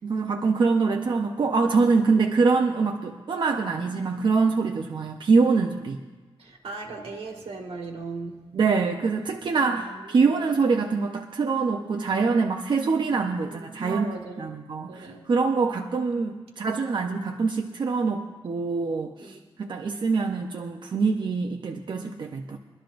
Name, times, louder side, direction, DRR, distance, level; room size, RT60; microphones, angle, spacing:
voice 1, 0.0-6.0 8.5-14.1 14.4-22.6, right 4 dB, 50° right, 0.7 m, -24 dB
voice 2, 6.4-8.4 9.6-10.3 13.4-14.6 14.9-15.3 19.2-19.4, right 4 dB, 80° right, 1.8 m, -38 dB
24.0 x 12.0 x 2.6 m
wide cardioid pair, 135°, 10 cm